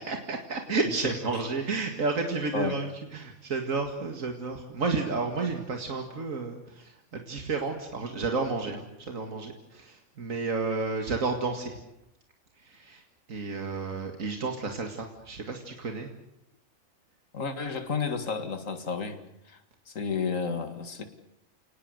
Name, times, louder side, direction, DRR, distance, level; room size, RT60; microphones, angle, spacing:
voice 1, 0.0-11.8 12.6-13.0 13.3-16.1, right 4 dB, 85° right, 4 dB, 2.4 m, -31 dB
voice 2, 17.3-19.2 19.5-19.6 19.9-21.0, left 5 dB, 80° left, 8 dB, 2.4 m, -31 dB
29.5 x 19.0 x 8.0 m, 0.82 s
omnidirectional pair, 1.3 m